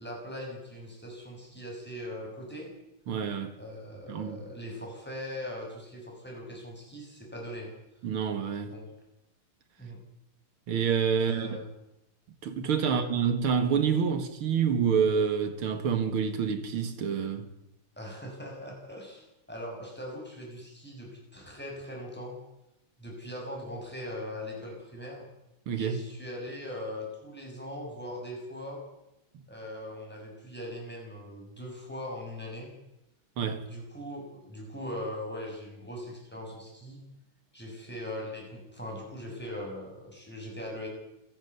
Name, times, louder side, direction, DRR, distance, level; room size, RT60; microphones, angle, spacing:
voice 1, 0.0-2.7 3.6-7.7 8.7-8.9 9.8-10.0 11.1-11.7 12.9-13.0 18.0-22.4 23.0-25.3 25.8-28.8 29.5-32.7 33.7-37.0 37.5-40.9, left 1 dB, 5° left, 6.9 m, -40 dB
voice 2, 3.1-3.5 4.1-4.4 8.0-8.7 10.7-11.6 12.4-17.5 25.7-26.0 33.4-33.6, right 6 dB, 90° right, 2.5 m, -27 dB
27.5 x 11.5 x 8.2 m
omnidirectional pair, 2.3 m